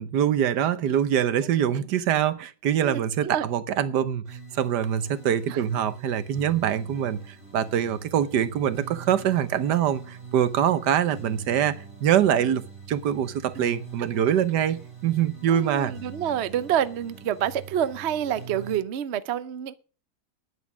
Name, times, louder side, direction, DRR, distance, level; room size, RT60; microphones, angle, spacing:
voice 1, 0.0-11.7 12.0-12.6 12.9-15.9, right 9 dB, 75° right, 1.4 m, -24 dB
voice 2, 2.8-3.5 5.5-5.6 13.6-13.7 14.0-14.1 15.5-19.7, right 10 dB, 55° right, 0.8 m, -28 dB
sound 1, 4.3-18.8, right 5 dB, 30° right, 5.5 m, -44 dB
10.5 x 9.7 x 6.2 m
omnidirectional pair, 1.9 m